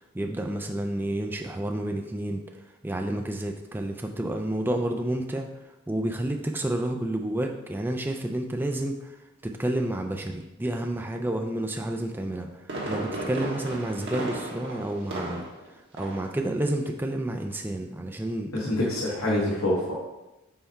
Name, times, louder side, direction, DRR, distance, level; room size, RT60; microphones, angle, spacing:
voice 1, 0.1-2.4 2.8-5.5 5.9-9.2 9.4-15.4 15.7-18.5, right 1 dB, 10° right, 3 dB, 0.3 m, -30 dB
Fireworks, 12.4-15.7 16.0-16.3 16.7-16.8, right 1 dB, 55° right, 1.4 m, -34 dB
voice 2, 18.5-19.9, left 1 dB, 75° left, -6 dB, 1.3 m, -26 dB
5.7 x 4.1 x 4.4 m, 1.0 s
head